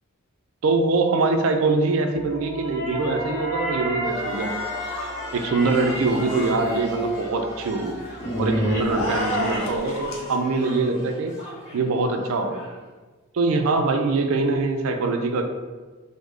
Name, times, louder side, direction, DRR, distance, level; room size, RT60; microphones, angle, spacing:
voice 1, 0.6-4.5 5.3-7.9 8.4-11.3 11.7-12.6 13.3-15.4, right 3 dB, 75° right, 5 dB, 0.4 m, -23 dB
sound 1, 2.1-9.6, equal, 45° left, 0.8 m, -31 dB
sound 2, 4.0-12.8, equal, 5° right, 1.3 m, -37 dB
sound 3, 8.8-10.3, left 1 dB, 70° left, 0.6 m, -29 dB
3.2 x 2.1 x 3.6 m, 1.3 s
head